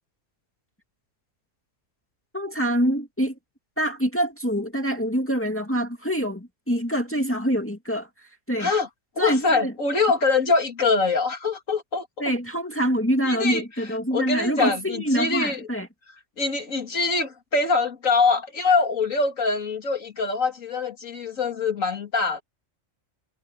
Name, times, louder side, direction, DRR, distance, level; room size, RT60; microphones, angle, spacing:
voice 1, 2.3-3.3 3.8-8.1 8.5-8.7 9.2-9.7 12.2-15.9, equal, 10° left, 2.2 m, -25 dB
voice 2, 9.2-12.1 13.2-13.6 14.1-15.6 16.4-22.4, left 4 dB, 80° left, 2.7 m, -24 dB
omnidirectional pair, 1.3 m